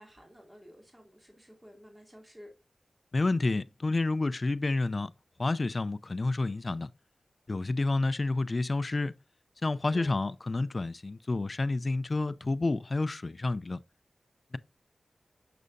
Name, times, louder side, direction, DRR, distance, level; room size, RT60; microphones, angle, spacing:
voice 1, 0.0-2.5 9.9-10.2, equal, 15° right, 2.5 m, -52 dB
voice 2, 3.1-5.1 5.4-6.9 7.5-9.1 9.6-13.8, left 2 dB, 50° left, 0.4 m, -29 dB
6.7 x 6.2 x 2.6 m
cardioid pair, 45°, 0 cm